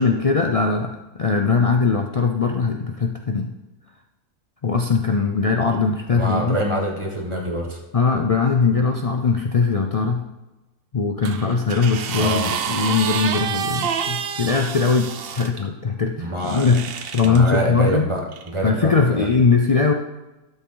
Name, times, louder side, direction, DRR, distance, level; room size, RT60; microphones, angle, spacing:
voice 1, 0.0-3.5 4.6-6.6 7.9-10.2 10.9-18.1 18.6-19.9, left 4 dB, 60° left, 3 dB, 0.3 m, -20 dB
voice 2, 6.1-7.8 12.1-12.5 16.2-16.7 17.2-19.3, right 1 dB, 20° right, 0 dB, 1.6 m, -25 dB
sound 1, 11.2-15.5 16.4-17.4 18.3-18.5, right 8 dB, 55° right, 0.7 m, -28 dB
12.0 x 7.1 x 3.9 m, 1.1 s
omnidirectional pair, 1.5 m